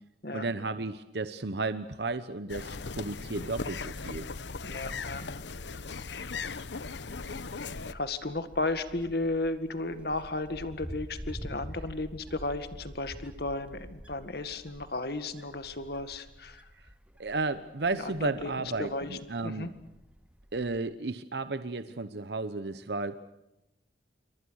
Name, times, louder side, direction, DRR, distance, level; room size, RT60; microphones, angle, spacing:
voice 1, 0.3-4.3 17.2-19.7 20.5-23.2, right 3 dB, 65° right, 11 dB, 0.9 m, -33 dB
sound 1, 2.5-7.9, left 4 dB, 80° left, 0.9 m, -38 dB
Wind, 4.5-20.8, equal, 5° right, 0.9 m, -48 dB
voice 2, 4.6-5.5 7.9-16.6 17.9-18.5 18.8-19.7, left 2 dB, 60° left, 10 dB, 1.9 m, -34 dB
28.5 x 24.5 x 6.5 m, 0.92 s
head